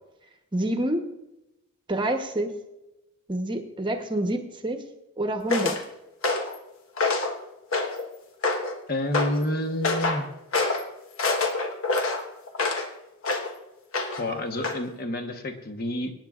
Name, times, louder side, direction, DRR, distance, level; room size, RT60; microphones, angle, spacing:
voice 1, 0.5-1.0 1.9-2.5 3.3-4.8 5.2-5.8, right 1 dB, 20° right, 5 dB, 0.9 m, -27 dB
sound 1, 5.5-5.8 6.2-6.6 7.0-7.4 7.7-8.1 8.4-8.8 9.1-9.4 9.8-10.2 10.5-10.8 11.2-12.9 13.2-13.5 13.9-14.3 14.6-14.8, left 3 dB, 75° left, 1.2 m, -26 dB
voice 2, 8.9-10.3 14.2-16.1, left 1 dB, 45° left, 5 dB, 1.1 m, -29 dB
24.0 x 9.1 x 2.4 m, 0.96 s
head